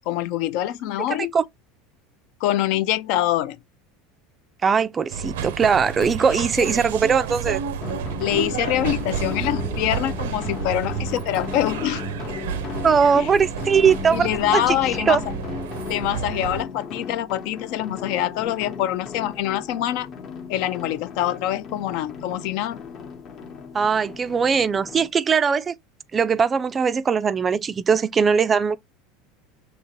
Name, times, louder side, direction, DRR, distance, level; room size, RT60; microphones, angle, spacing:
voice 1, 0.0-1.3 2.4-3.6 6.0-6.7 8.2-12.0 13.1-13.3 14.1-15.2 15.9-20.1 20.5-22.8, left 13 dB, 65° left, 0.5 m, -25 dB
voice 2, 4.6-7.6 12.8-14.3 14.5-15.2 23.7-25.7 26.1-28.8, right 6 dB, 25° right, 0.3 m, -20 dB
sound 1, 5.1-16.6, right 7 dB, 85° right, 0.5 m, -31 dB
sound 2, 7.8-25.1, left 6 dB, 40° left, 0.9 m, -36 dB
5.4 x 2.9 x 2.9 m
supercardioid pair, 125°, 0 cm